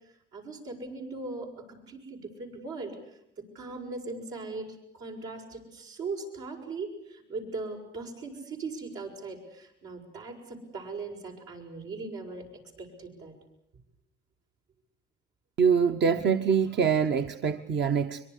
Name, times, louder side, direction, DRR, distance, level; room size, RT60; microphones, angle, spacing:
voice 1, 0.3-3.0 3.6-12.5 12.8-13.3, right 3 dB, 85° right, 0 dB, 7.0 m, -39 dB
voice 2, 15.6-18.2, right 6 dB, 60° right, 6 dB, 1.1 m, -24 dB
24.0 x 23.0 x 8.4 m, 0.77 s
cardioid pair, 90°, 20 cm